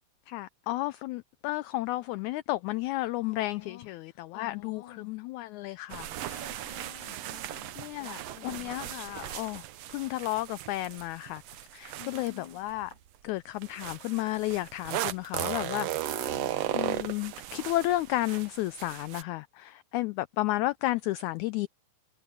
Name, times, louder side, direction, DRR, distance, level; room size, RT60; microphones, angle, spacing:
voice 1, 0.3-6.5 7.8-9.6 9.9-12.9 13.2-15.9 16.7-21.7, left 17 dB, 85° left, 1.7 m, -32 dB
voice 2, 3.2-5.1 6.2-8.7 12.0-12.6 16.1-16.5, left 13 dB, 65° left, 1.3 m, -49 dB
sound 1, 5.9-12.9 13.6-19.2, right 13 dB, 80° right, 1.4 m, -36 dB
omnidirectional pair, 3.9 m